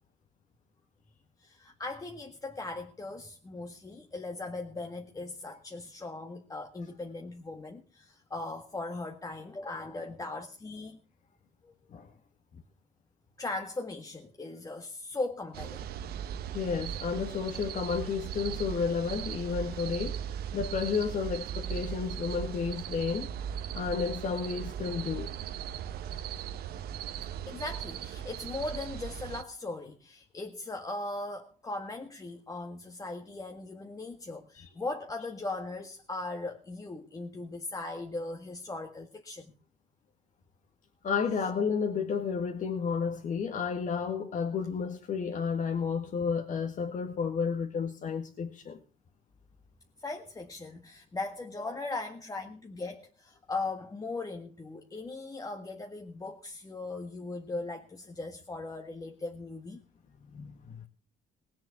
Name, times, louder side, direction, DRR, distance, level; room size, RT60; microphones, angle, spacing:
voice 1, 1.4-11.0 11.6-11.7 13.4-15.8 26.1-26.2 27.5-39.5 50.0-59.8, left 2 dB, 20° left, 1.8 m, -39 dB
sound 1, 15.5-29.4, right 9 dB, 70° right, 1.1 m, -38 dB
voice 2, 16.5-20.2 20.5-23.3 23.7-25.3 34.6-34.7 41.0-48.8 60.3-60.8, left 6 dB, 50° left, 1.9 m, -31 dB
19.5 x 7.5 x 7.0 m
cardioid pair, 110°, 17 cm